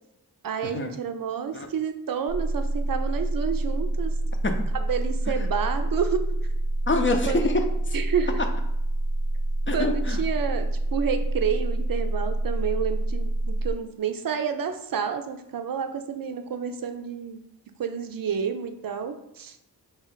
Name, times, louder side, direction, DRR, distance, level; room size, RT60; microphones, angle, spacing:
voice 1, 0.4-4.1 4.7-6.2 7.2-7.4 7.9-8.4 9.7-17.4 17.8-19.6, right 7 dB, 60° right, 7 dB, 0.6 m, -29 dB
sound 1, 2.3-13.7, right 1 dB, 90° left, 0.7 m, -27 dB
voice 2, 6.9-7.9 9.7-10.2, left 2 dB, 30° left, 5 dB, 0.6 m, -26 dB
3.1 x 2.9 x 3.9 m, 0.85 s
cardioid pair, 50°, 39 cm